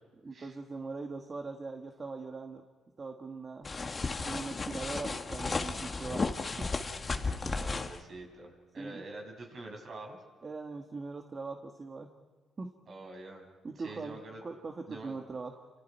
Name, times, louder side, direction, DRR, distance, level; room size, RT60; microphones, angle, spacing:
voice 1, 0.2-2.6 3.0-3.7 4.2-6.3 6.6-6.7 8.8-9.0 10.4-12.1 12.6-12.7 13.6-15.7, right 3 dB, 35° right, 3 dB, 1.9 m, -41 dB
sound 1, 3.6-8.0, left 3 dB, 30° left, 1.9 m, -34 dB
voice 2, 7.4-10.2 12.9-13.4 13.7-14.4 14.9-15.2, right 2 dB, 50° right, 2 dB, 6.6 m, -46 dB
29.5 x 26.5 x 4.8 m, 1.4 s
cardioid pair, 90°, 0 cm